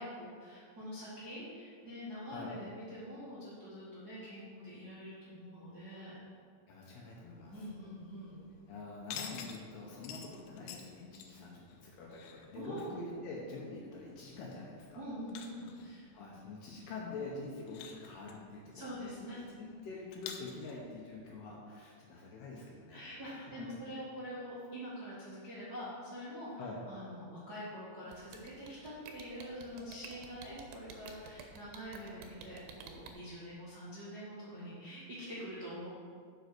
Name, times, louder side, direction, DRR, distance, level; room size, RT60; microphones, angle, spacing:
voice 1, 0.0-6.2 7.5-8.4 12.5-12.9 14.9-16.1 18.7-19.4 22.9-26.5 26.9-35.9, equal, 45° right, -10 dB, 1.2 m, -45 dB
voice 2, 2.3-2.6 6.7-7.7 8.7-15.0 16.1-23.7 26.5-26.8, left 3 dB, 70° left, -3 dB, 2.7 m, -46 dB
sound 1, 7.2-21.6, left 7 dB, 90° left, 3.2 m, -52 dB
sound 2, 28.1-33.1, right 6 dB, 80° right, 3.2 m, -50 dB
7.8 x 6.7 x 6.2 m, 2.1 s
omnidirectional pair, 5.5 m